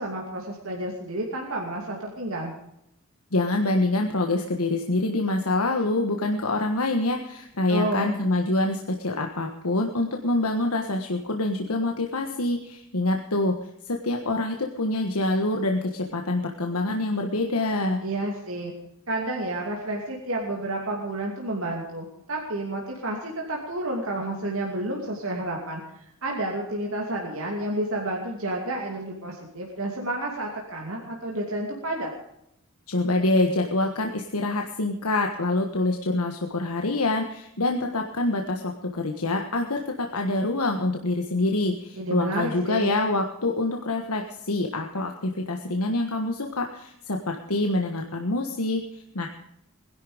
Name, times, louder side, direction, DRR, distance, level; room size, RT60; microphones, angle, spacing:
voice 1, 0.0-2.5 7.7-8.1 18.0-18.7 19.1-25.8 26.2-32.1 42.0-42.9, right 1 dB, 65° right, -1 dB, 2.7 m, -30 dB
voice 2, 3.3-13.5 13.8-18.0 32.9-49.3, left 2 dB, 80° left, 2 dB, 1.5 m, -26 dB
20.5 x 11.5 x 5.1 m, 0.80 s
head